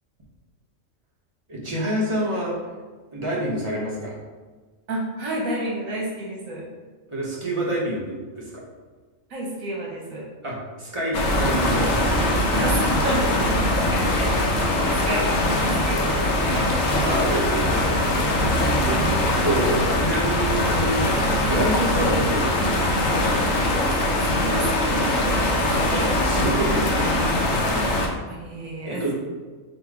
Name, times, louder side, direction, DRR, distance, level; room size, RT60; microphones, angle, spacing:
voice 1, 1.5-2.6 3.1-4.2 7.1-8.6 10.4-12.6 16.5-16.7 17.0-19.0 19.4-21.2 21.4-22.8 25.9-27.2 28.8-29.1, right 1 dB, 25° right, -5 dB, 0.8 m, -28 dB
voice 2, 4.9-6.7 9.3-10.3 12.5-16.7 18.8-19.3 23.6-26.1 28.3-29.1, right 1 dB, 80° right, -3 dB, 1.5 m, -31 dB
sound 1, 11.1-28.1, left 1 dB, 75° left, 1.0 m, -22 dB
4.1 x 2.2 x 4.6 m, 1.4 s
omnidirectional pair, 1.4 m